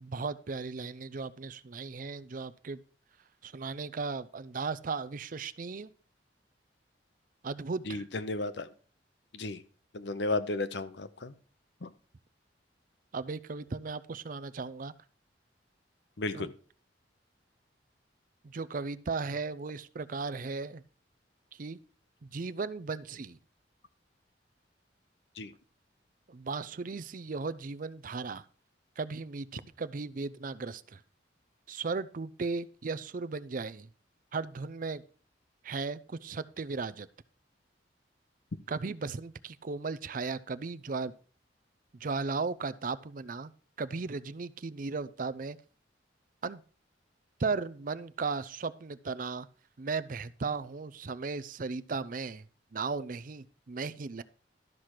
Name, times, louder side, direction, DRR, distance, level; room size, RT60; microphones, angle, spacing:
voice 1, 0.0-2.8 3.4-5.9 7.4-8.1 13.1-14.9 16.3-16.5 18.4-20.8 21.5-21.8 22.2-23.4 26.3-28.5 29.0-31.0 31.7-33.9 34.3-35.0 35.6-37.1 38.7-41.1 42.0-43.5 43.8-45.6 46.4-46.6 47.4-49.5 49.8-52.5 52.7-54.2, right 4 dB, 45° right, 14 dB, 0.5 m, -36 dB
voice 2, 7.9-8.7 9.3-9.6 9.9-11.3 11.8-11.9 16.2-16.5 25.4-25.5, left 2 dB, 65° left, 13 dB, 0.8 m, -33 dB
12.0 x 5.9 x 4.8 m, 0.41 s
head